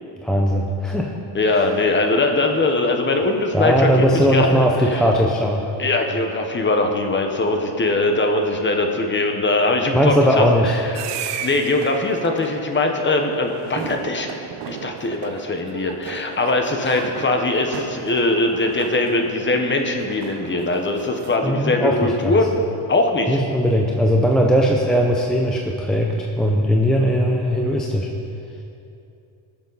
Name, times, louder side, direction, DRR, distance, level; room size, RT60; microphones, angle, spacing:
voice 1, 0.2-1.1 1.5-1.6 3.5-5.7 9.9-10.8 16.8-17.0 21.4-22.4 23.3-28.1, equal, ahead, 0 dB, 0.5 m, -19 dB
voice 2, 1.3-4.6 4.9-5.0 5.8-11.1 11.4-14.3 14.7-22.5 22.9-23.4, left 2 dB, 20° left, 4 dB, 1.0 m, -21 dB
sound 1, 10.9-21.4, right 8 dB, 60° right, 0.8 m, -35 dB
19.0 x 7.1 x 4.0 m, 2.7 s
cardioid pair, 135°, 50 cm